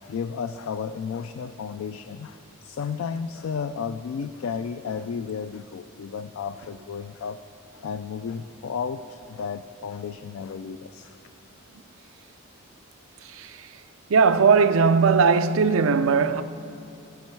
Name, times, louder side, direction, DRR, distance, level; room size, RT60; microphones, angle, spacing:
voice 1, 0.0-7.4 7.7-11.2, left 6 dB, 75° left, 0.3 m, -33 dB
voice 2, 14.1-16.4, right 5 dB, 70° right, 0.5 m, -18 dB
15.0 x 9.7 x 4.6 m
head